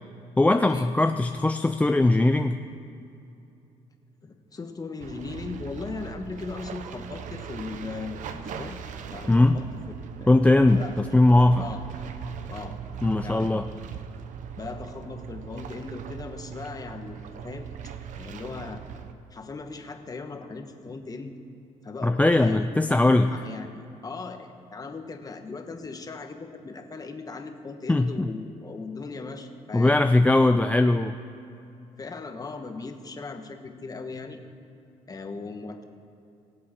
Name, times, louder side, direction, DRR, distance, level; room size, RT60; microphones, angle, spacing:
voice 1, 0.4-2.6 9.3-9.6 10.3-10.8 11.1-11.6 13.0-13.7 22.0-23.3 27.9-28.3 29.7-31.2, left 2 dB, 10° left, 7 dB, 0.4 m, -20 dB
voice 2, 4.2-8.8 9.1-9.7 10.2-10.4 10.7-11.2 11.6-11.8 12.5-12.8 13.2-13.6 14.5-17.2 17.4-17.7 18.1-18.8 19.3-21.4 21.8-29.9 32.0-34.4 35.1-35.8, left 4 dB, 25° left, 5 dB, 1.3 m, -38 dB
sound 1, 5.0-19.1, right 7 dB, 70° right, 0.8 m, -40 dB
22.5 x 7.5 x 4.3 m, 2.8 s
cardioid pair, 100°, 13 cm